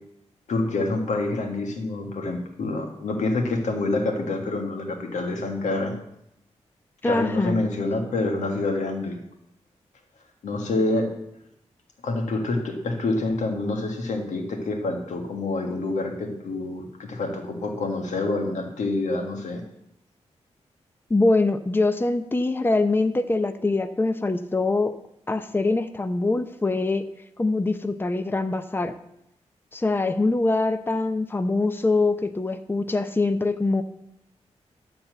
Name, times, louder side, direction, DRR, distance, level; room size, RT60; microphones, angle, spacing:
voice 1, 0.5-5.9 7.0-9.2 10.4-11.1 12.0-19.6, left 2 dB, 90° left, 2 dB, 1.7 m, -27 dB
voice 2, 7.0-7.6 21.1-24.9 25.3-27.1 27.4-28.9 29.7-33.8, left 2 dB, 20° left, 9 dB, 0.7 m, -23 dB
12.0 x 4.2 x 7.9 m, 0.80 s
cardioid pair, 65°, 12 cm